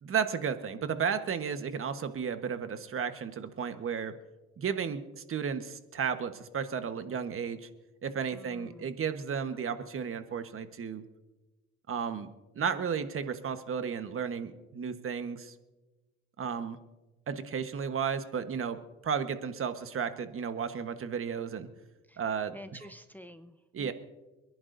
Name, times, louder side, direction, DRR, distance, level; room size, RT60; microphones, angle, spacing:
voice 1, 0.0-4.1 4.6-7.7 8.0-11.0 11.9-12.3 12.5-15.5 16.4-16.8 17.3-18.8 19.0-21.7 22.2-22.5 23.7-23.9, right 7 dB, 45° right, 9 dB, 1.3 m, -33 dB
voice 2, 8.3-8.9 22.1-22.2 22.5-23.9, left 1 dB, 5° left, 9 dB, 0.9 m, -49 dB
27.5 x 11.0 x 2.7 m, 1.1 s
supercardioid pair, 75°, 29 cm